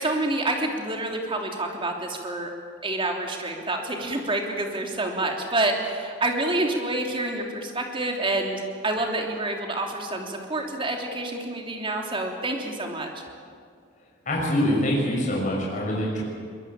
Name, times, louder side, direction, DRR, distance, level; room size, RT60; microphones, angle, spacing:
voice 1, 0.0-2.5 2.8-13.2, right 2 dB, 25° right, 2 dB, 3.2 m, -28 dB
voice 2, 14.2-16.2, equal, 40° left, -3 dB, 6.7 m, -24 dB
23.0 x 21.5 x 9.0 m, 2.2 s
head